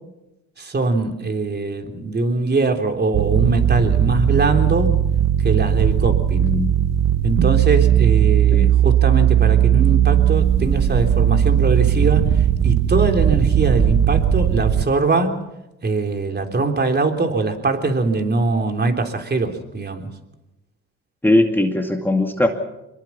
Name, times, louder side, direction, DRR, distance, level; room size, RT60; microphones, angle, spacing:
voice 1, 0.6-5.0 5.4-6.5 7.2-15.4 15.8-20.1, right 3 dB, 35° right, 5 dB, 3.5 m, -22 dB
sound 1, 3.1-14.8, right 10 dB, 60° right, 1.0 m, -17 dB
voice 2, 6.4-6.7 8.5-8.7 21.2-22.5, left 1 dB, 5° left, 3 dB, 2.4 m, -19 dB
25.5 x 22.0 x 5.9 m, 0.92 s
cardioid pair, 90°, 30 cm